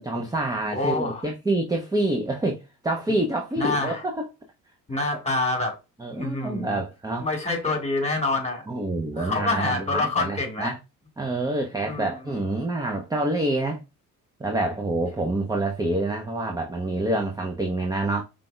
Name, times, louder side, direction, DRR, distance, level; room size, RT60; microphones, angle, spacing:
voice 1, 0.0-4.2 6.0-7.3 8.7-10.8 11.2-13.8 14.4-18.2, right 2 dB, 10° right, 0.6 m, -27 dB
voice 2, 0.7-1.3 3.6-4.0 4.9-5.8 6.1-6.8 7.2-8.6 9.2-10.7 11.8-12.1, left 3 dB, 15° left, 1.7 m, -26 dB
5.1 x 3.2 x 2.3 m
figure-of-eight pair, 50°, 47 cm